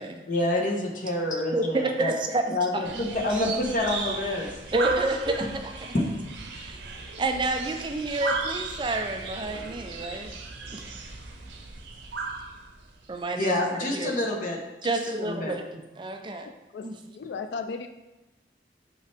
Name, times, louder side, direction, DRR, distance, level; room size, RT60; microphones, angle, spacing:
voice 1, 0.3-2.1 2.5-4.5 5.9-6.0 13.3-14.6 14.8-15.5, left 1 dB, 45° left, 0 dB, 1.0 m, -27 dB
voice 2, 1.5-2.8 4.7-5.7 6.5-6.8 7.2-10.3 10.7-10.8 13.1-14.2 14.8-16.5 16.8-17.0, right 2 dB, 25° right, 5 dB, 0.4 m, -29 dB
sound 1, 2.8-13.2, right 4 dB, 85° right, 0.8 m, -36 dB
voice 3, 16.7-17.9, left 4 dB, 75° left, 8 dB, 0.3 m, -35 dB
5.9 x 5.5 x 3.3 m, 1.0 s
head